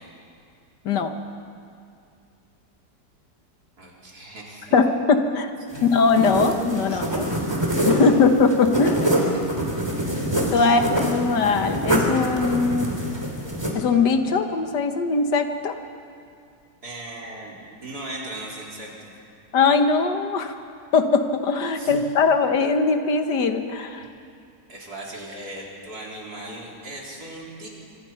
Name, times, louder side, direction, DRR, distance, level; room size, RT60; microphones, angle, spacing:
voice 1, 3.8-4.8 5.7-5.9 6.9-7.1 7.4-7.8 9.2-9.4 10.5-10.8 16.8-18.9 21.8-22.0 23.9-24.1 24.7-27.7, right 1 dB, 65° right, -3 dB, 4.6 m, -38 dB
voice 2, 4.7-5.5 5.8-7.3 7.9-9.2 10.5-12.9 13.7-15.8 19.5-20.5 20.9-24.1, left 4 dB, 80° left, 7 dB, 2.0 m, -20 dB
sound 1, 5.7-13.7, right 1 dB, 15° right, 3.3 m, -25 dB
25.5 x 25.0 x 5.8 m, 2.4 s
omnidirectional pair, 1.8 m